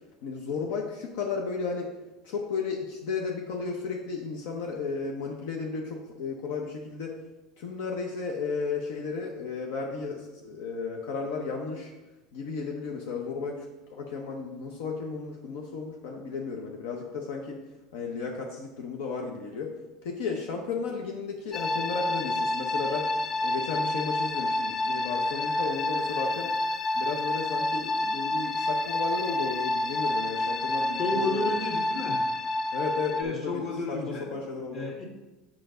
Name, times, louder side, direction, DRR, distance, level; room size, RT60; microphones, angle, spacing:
voice 1, 0.2-1.9 2.2-7.2 7.6-11.9 12.3-17.6 17.9-19.7 20.0-23.1 23.4-26.5 26.9-31.5 32.7-34.9, left 5 dB, 80° left, 1 dB, 0.9 m, -34 dB
sound 1, 21.5-33.2, left 2 dB, 20° left, 0.4 m, -29 dB
voice 2, 31.0-32.2 33.2-34.3 34.7-35.0, left 2 dB, 40° left, -1 dB, 1.9 m, -31 dB
6.9 x 6.0 x 3.8 m, 1.1 s
supercardioid pair, 135°, 0 cm